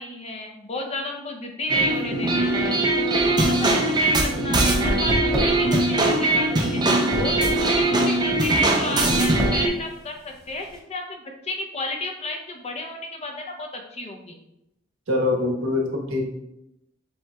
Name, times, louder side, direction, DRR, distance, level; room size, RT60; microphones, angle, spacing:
voice 1, 0.0-2.8 3.1-6.8 7.2-14.4, left 2 dB, 30° left, 3 dB, 0.6 m, -33 dB
sound 1, 1.7-9.7, right 2 dB, 20° right, 0.5 m, -21 dB
sound 2, 3.2-10.8, equal, 5° left, 1.2 m, -30 dB
voice 2, 15.1-16.2, left 2 dB, 80° right, -1 dB, 1.2 m, -23 dB
7.6 x 2.8 x 2.3 m, 0.84 s
head